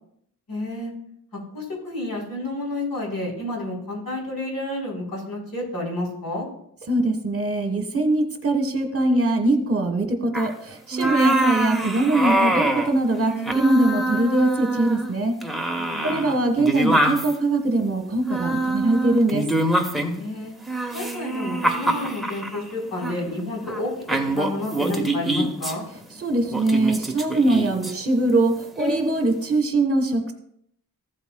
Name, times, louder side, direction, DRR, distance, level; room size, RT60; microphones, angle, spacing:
voice 1, 0.5-0.9 1.5-6.5 15.8-16.2 20.1-20.5 20.9-23.9 24.3-25.9, left 2 dB, 75° left, -4 dB, 3.9 m, -30 dB
voice 2, 6.9-15.4 16.0-19.4 26.2-30.3, right 2 dB, 40° right, 5 dB, 1.2 m, -22 dB
sound 1, 10.3-10.5 10.9-12.9 13.2-15.1 15.4-17.3 18.3-20.2 20.7-22.6 23.0-23.2 23.7-23.8 24.1-25.7 26.5-27.9 28.8-29.1, right 1 dB, ahead, 0.9 m, -24 dB
14.5 x 8.0 x 2.3 m, 0.71 s
wide cardioid pair, 125°, 36 cm